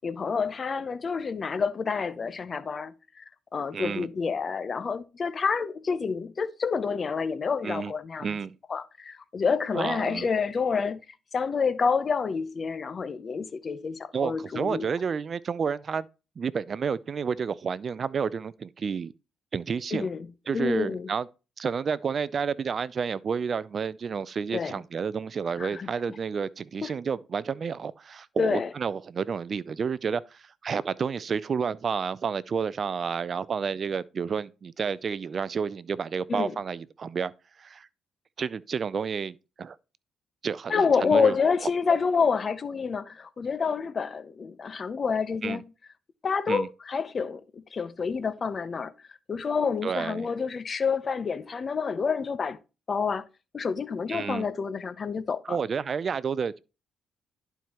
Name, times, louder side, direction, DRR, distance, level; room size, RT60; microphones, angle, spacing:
voice 1, 0.0-3.2 3.5-8.3 8.7-11.0 11.3-14.8 19.9-20.3 20.5-21.1 24.5-24.8 25.6-25.9 26.8-26.9 28.4-28.7 36.3-36.5 40.7-45.6 46.2-48.9 49.3-52.6 52.9-53.2 53.5-55.6, left 5 dB, 40° left, 0.6 m, -28 dB
voice 2, 3.7-4.1 7.6-7.9 8.2-8.5 9.7-10.3 14.1-16.1 16.4-19.1 19.5-20.1 20.5-21.3 21.6-37.3 37.6-37.9 38.4-39.8 40.4-41.4 45.4-45.6 46.5-46.7 49.8-50.3 54.1-54.5 55.4-56.6, right 6 dB, 45° right, 0.4 m, -30 dB
11.0 x 4.5 x 2.9 m
cardioid pair, 90°, 0 cm